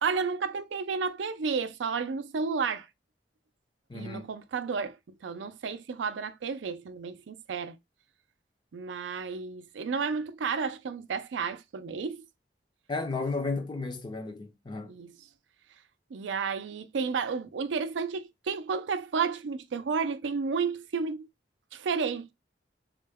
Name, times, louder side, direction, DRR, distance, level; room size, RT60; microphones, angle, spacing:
voice 1, 0.0-2.9 3.9-5.0 5.2-7.8 8.7-12.3 14.8-15.1 16.1-21.3 21.7-22.3, right 5 dB, 85° right, 0.4 m, -32 dB
voice 2, 3.9-4.3 12.9-14.9, left 3 dB, 25° left, 0.5 m, -33 dB
3.7 x 2.2 x 3.3 m
head